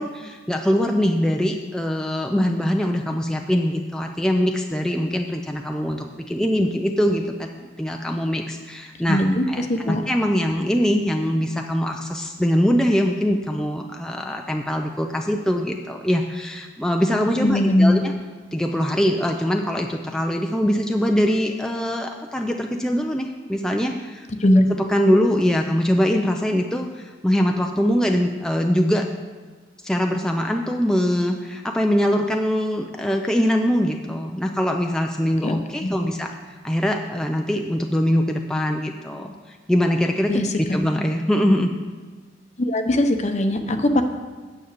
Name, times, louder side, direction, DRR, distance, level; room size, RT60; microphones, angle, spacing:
voice 1, 0.0-18.1 18.5-24.3 24.7-29.1 29.8-36.3 36.6-41.7, equal, 5° left, 2 dB, 0.5 m, -22 dB
voice 2, 9.1-10.0 17.4-18.0 24.4-24.6 35.4-35.6 35.8-35.9 40.3-40.4 42.6-44.0, left 1 dB, 40° left, 7 dB, 0.8 m, -19 dB
9.3 x 7.1 x 6.6 m, 1.4 s
head